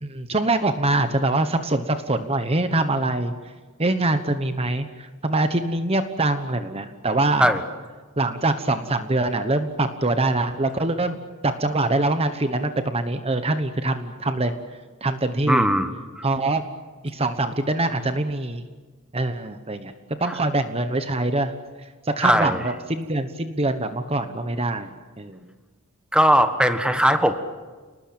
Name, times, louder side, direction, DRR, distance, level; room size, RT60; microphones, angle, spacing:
voice 1, 0.0-3.3 3.8-7.5 8.2-11.2 11.4-14.5 15.0-15.6 16.2-16.6 17.0-18.6 19.1-19.9 20.2-21.5 22.0-24.9 25.2-25.4, right 2 dB, 25° right, 9 dB, 1.2 m, -24 dB
voice 2, 15.5-15.9 22.2-22.6 26.1-27.3, equal, 5° right, 8 dB, 1.4 m, -18 dB
29.5 x 19.5 x 8.9 m, 1.4 s
head